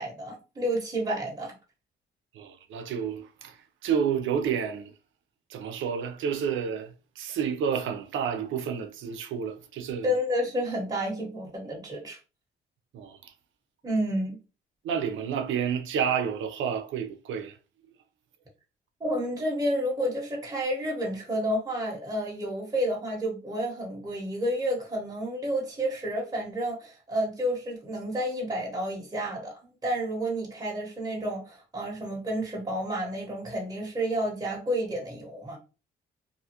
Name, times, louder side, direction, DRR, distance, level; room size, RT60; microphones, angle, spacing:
voice 1, 0.0-1.5 10.0-12.2 13.8-14.4 19.0-35.6, equal, 20° right, 1.0 m, -30 dB
voice 2, 2.3-4.9 5.5-10.1 12.9-13.3 14.8-17.6, right 7 dB, 75° right, 0.6 m, -30 dB
2.6 x 2.3 x 2.8 m
cardioid pair, 90°, 20 cm